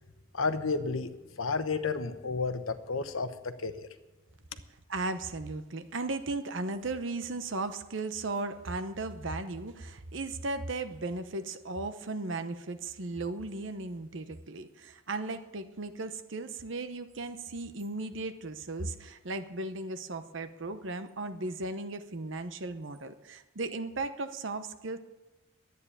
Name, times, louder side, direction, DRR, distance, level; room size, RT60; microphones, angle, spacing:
voice 1, 0.3-1.1 1.4-3.7, left 4 dB, 90° left, 10 dB, 1.0 m, -31 dB
voice 2, 4.9-25.0, right 2 dB, 70° right, 10 dB, 0.8 m, -36 dB
11.0 x 9.4 x 8.4 m, 1.1 s
head